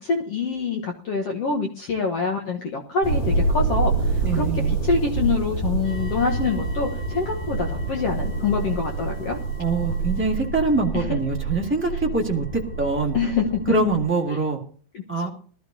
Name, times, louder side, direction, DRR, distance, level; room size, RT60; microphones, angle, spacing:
voice 1, 0.0-9.4 10.9-11.2 13.1-13.6 14.9-15.3, left 4 dB, 70° left, 1 dB, 1.5 m, -26 dB
sound 1, 3.0-14.0, right 3 dB, 50° left, 8.5 m, -27 dB
voice 2, 4.2-4.7 9.6-12.4 12.8-13.1 13.7-14.6 15.1-15.3, right 3 dB, 10° right, -2 dB, 0.6 m, -23 dB
sound 2, 5.8-14.5, left 1 dB, 30° left, 6.3 m, -48 dB
21.0 x 13.5 x 2.8 m, 0.43 s
omnidirectional pair, 4.6 m